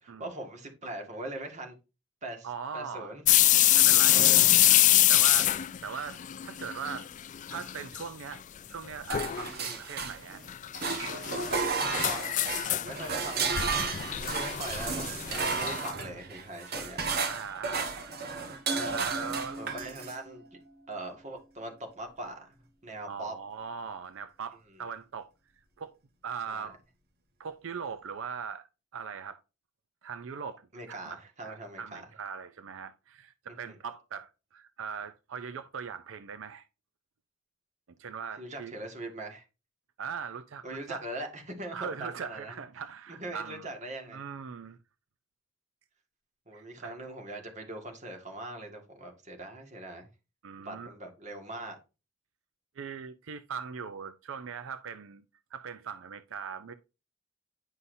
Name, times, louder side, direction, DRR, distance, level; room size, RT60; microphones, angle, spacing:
voice 1, 0.0-1.7 2.2-3.2 4.1-4.5 9.5-9.8 11.8-17.0 18.7-19.1 19.6-20.4 20.9-22.5 22.8-23.3 26.5-26.7 30.7-32.0 33.5-33.7 38.4-39.5 40.6-42.6 43.1-44.2 46.5-50.1 50.6-51.8, right 1 dB, 35° right, 1.8 m, -41 dB
voice 2, 2.4-3.1 3.7-4.3 5.1-7.1 7.5-8.4 8.7-10.4 17.3-17.9 18.9-19.6 23.1-25.3 25.8-26.0 26.2-26.8 27.4-29.4 30.0-36.7 38.0-38.7 40.0-41.0 41.7-43.7 44.1-44.8 46.5-47.0 50.4-50.9 52.8-55.2 55.5-56.7, right 6 dB, 80° right, 0.5 m, -40 dB
sound 1, 3.3-7.1 7.3-8.0 8.4-8.5 9.1-9.5 10.5-15.9, left 14 dB, 40° left, 0.3 m, -25 dB
sound 2, 9.1-10.4 10.7-20.2, right 5 dB, 55° right, 1.3 m, -33 dB
9.7 x 5.6 x 2.6 m
head